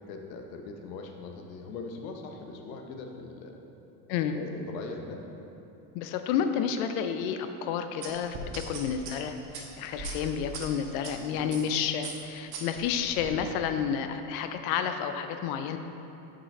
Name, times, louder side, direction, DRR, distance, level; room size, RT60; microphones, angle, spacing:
voice 1, 0.0-3.6 4.2-5.3 10.7-11.5, left 3 dB, 80° left, 4 dB, 0.9 m, -41 dB
voice 2, 5.9-15.8, left 7 dB, 60° left, 8 dB, 0.6 m, -30 dB
sound 1, 8.0-11.1 11.5-11.7 12.0-13.3, right 3 dB, 50° right, 1.1 m, -40 dB
5.6 x 5.5 x 4.1 m, 2.9 s
supercardioid pair, 115°, 49 cm